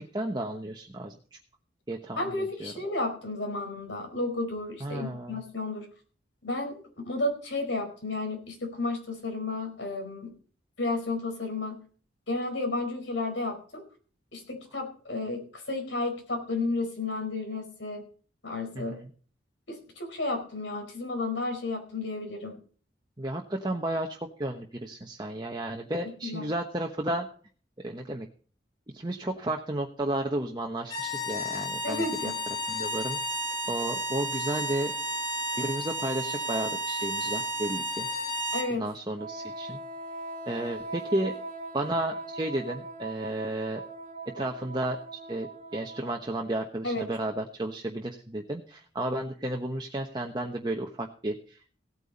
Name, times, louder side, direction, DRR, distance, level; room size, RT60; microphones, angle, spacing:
voice 1, 0.0-1.4 1.9-2.7 4.8-5.4 18.7-19.1 23.2-27.3 27.8-28.3 28.9-32.3 32.7-33.2 33.7-34.9 35.6-38.1 38.7-39.8 40.5-41.3 41.7-43.8 44.3-51.8, right 1 dB, 25° right, 2 dB, 1.1 m, -33 dB
voice 2, 2.2-5.9 6.4-10.3 10.8-11.8 12.3-13.8 14.3-18.0 18.4-18.9 19.7-22.6 26.2-26.5 31.8-32.3 38.5-38.8 46.8-47.0, left 2 dB, 85° left, 4 dB, 4.8 m, -32 dB
sound 1, 30.8-38.7, equal, 20° left, 1.9 m, -32 dB
Wind instrument woodwind instrument, 39.1-46.5, right 2 dB, 40° right, 2.0 m, -41 dB
17.0 x 9.1 x 4.2 m, 0.42 s
head